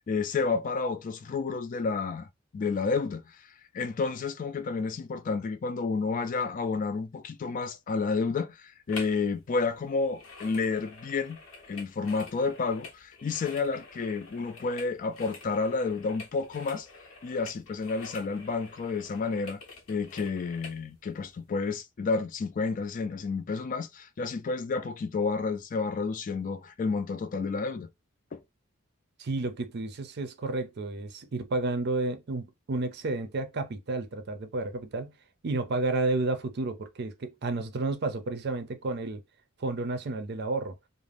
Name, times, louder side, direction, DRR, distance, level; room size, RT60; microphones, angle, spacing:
voice 1, 0.1-2.3 2.5-3.4 3.7-11.4 11.7-16.9 17.2-19.6 19.9-27.9 28.3-28.4, left 4 dB, 40° left, 0.3 m, -30 dB
sound 1, 8.9-9.2 9.5-20.8 21.3-21.4, left 3 dB, 90° left, 0.8 m, -47 dB
voice 2, 29.2-35.1 35.4-39.2 39.6-40.7, right 2 dB, 55° right, 0.5 m, -31 dB
2.5 x 2.0 x 3.3 m
head